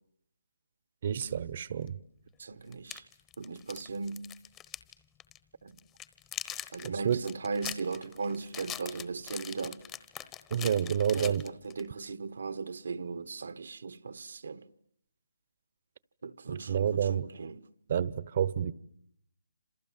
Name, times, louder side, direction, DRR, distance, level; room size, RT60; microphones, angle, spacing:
voice 1, 1.0-2.0 6.8-7.2 10.5-11.5 16.5-17.3 17.9-18.7, right 8 dB, 45° right, 1.0 m, -29 dB
sound 1, 1.9-2.0 2.7-4.9 5.2-5.4 5.8-11.9, left 10 dB, 15° left, 1.1 m, -42 dB
voice 2, 2.4-3.0 3.4-4.3 5.6-5.7 6.7-9.8 11.1-14.6 16.2-17.6, right 4 dB, 70° right, 1.3 m, -38 dB
29.0 x 27.5 x 7.5 m
hypercardioid pair, 155°, 0 cm